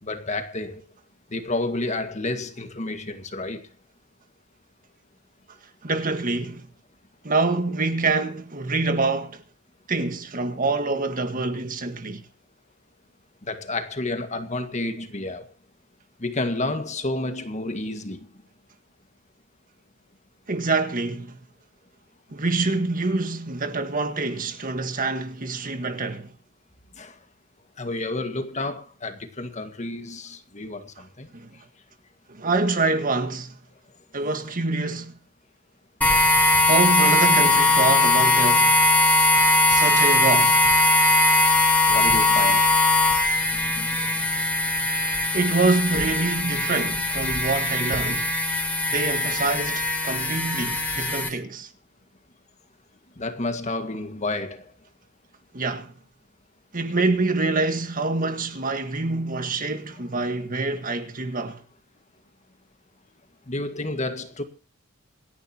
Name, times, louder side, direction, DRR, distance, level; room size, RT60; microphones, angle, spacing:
voice 1, 0.0-0.8 1.3-3.7 13.4-15.5 16.2-18.3 27.0-27.1 27.8-31.3 41.9-42.8 43.5-44.2 53.2-54.7 63.5-64.4, left 2 dB, 35° left, 1.8 m, -30 dB
voice 2, 5.8-6.7 7.2-9.4 9.9-12.2 20.5-21.4 22.3-26.3 31.3-31.6 32.3-33.6 34.1-35.1 36.7-38.7 39.7-40.6 45.0-48.3 48.9-51.7 55.5-55.9 56.7-61.6, right 3 dB, 40° right, 1.7 m, -26 dB
sound 1, 36.0-51.3, left 2 dB, 5° left, 3.6 m, -20 dB
27.0 x 11.0 x 3.0 m
head